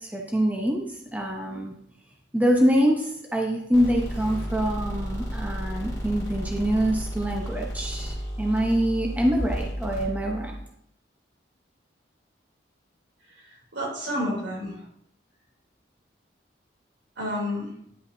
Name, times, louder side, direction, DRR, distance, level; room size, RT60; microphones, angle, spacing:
voice 1, 0.0-0.8 1.1-1.7 2.3-10.5, equal, 10° right, 0 dB, 0.7 m, -25 dB
sound 1, 3.7-10.6, equal, 20° left, 2.0 m, -33 dB
voice 2, 13.4-14.8 17.2-17.7, left 1 dB, 85° right, -4 dB, 2.9 m, -30 dB
9.8 x 5.5 x 2.6 m, 0.73 s
head